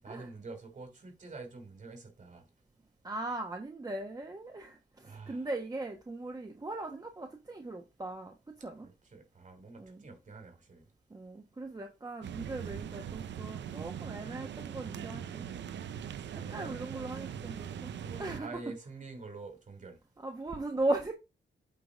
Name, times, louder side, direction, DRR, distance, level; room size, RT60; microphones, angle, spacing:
voice 1, 0.0-2.5 5.0-5.5 9.0-10.8 16.2-16.8 18.0-20.0, right 3 dB, 45° right, 3.0 m, -47 dB
voice 2, 3.0-8.9 9.8-10.0 11.1-15.5 16.3-18.6 20.2-21.1, right 2 dB, 20° right, 1.1 m, -38 dB
sound 1, 12.2-18.4, right 9 dB, 80° right, 0.6 m, -41 dB
8.5 x 3.9 x 5.0 m
wide cardioid pair, 125°, 18 cm